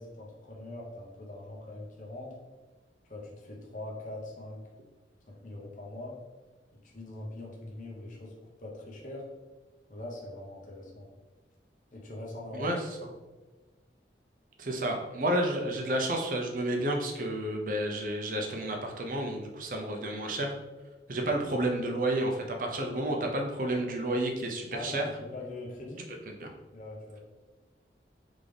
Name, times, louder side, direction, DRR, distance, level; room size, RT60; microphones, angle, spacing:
voice 1, 0.0-2.3 3.1-4.6 5.3-6.2 6.8-8.3 8.6-9.2 9.9-11.1 11.9-12.7 24.1-24.2 24.7-26.1 26.7-27.2, left 2 dB, 45° left, -3 dB, 0.8 m, -42 dB
voice 2, 12.5-12.9 14.6-20.6 21.1-25.0 26.3-26.5, right 1 dB, 45° right, 2 dB, 0.6 m, -31 dB
4.0 x 3.5 x 3.4 m, 1.2 s
head